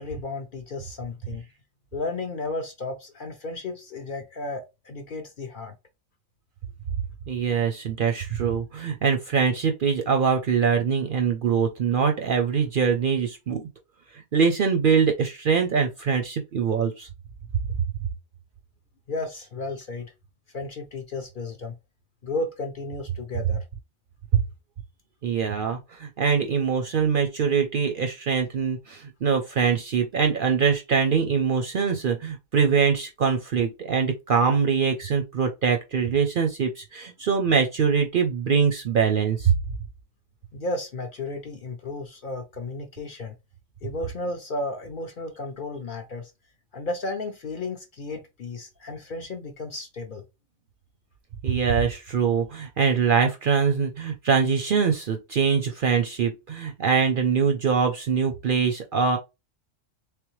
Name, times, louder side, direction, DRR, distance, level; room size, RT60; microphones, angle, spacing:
voice 1, 0.0-1.4 1.9-5.7 19.1-20.1 20.5-21.7 22.2-23.6 40.5-43.3 43.8-46.3 46.7-50.2, left 2 dB, 50° left, 0.7 m, -33 dB
voice 2, 7.3-13.6 14.1-17.1 24.3-24.4 25.2-39.5 51.4-59.2, right 6 dB, 55° right, 0.6 m, -23 dB
3.4 x 3.3 x 3.1 m
omnidirectional pair, 1.3 m